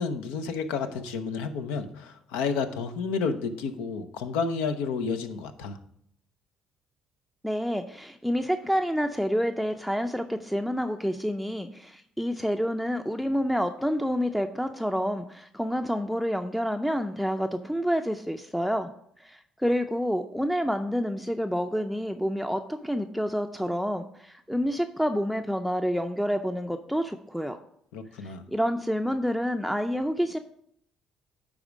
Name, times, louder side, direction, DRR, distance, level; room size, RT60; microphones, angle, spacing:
voice 1, 0.0-5.8 27.9-28.4, left 5 dB, 80° left, 9 dB, 0.6 m, -31 dB
voice 2, 7.4-18.9 19.2-27.6 28.2-30.4, equal, ahead, 7 dB, 0.5 m, -28 dB
9.9 x 3.6 x 5.0 m, 0.71 s
hypercardioid pair, 60°, 2 cm